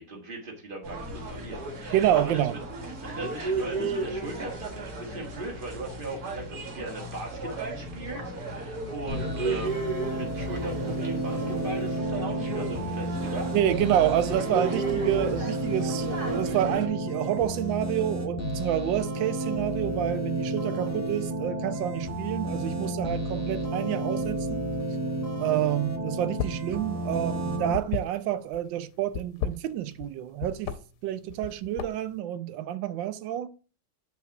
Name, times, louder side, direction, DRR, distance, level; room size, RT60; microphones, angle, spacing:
voice 1, 0.0-2.6 3.0-13.5, right 2 dB, 25° right, 1.7 m, -38 dB
sound 1, 0.8-16.9, right 3 dB, 45° right, 2.1 m, -35 dB
voice 2, 1.9-2.6 13.5-24.6 25.4-30.8 31.0-33.5, right 11 dB, 75° right, 1.1 m, -28 dB
sound 2, 9.1-27.7, right 1 dB, 10° right, 0.9 m, -31 dB
sound 3, 26.2-26.7 27.0-28.6 29.1-30.1 30.4-30.8 31.3-32.1, left 7 dB, 90° left, 1.6 m, -33 dB
6.1 x 4.2 x 5.8 m
omnidirectional pair, 2.4 m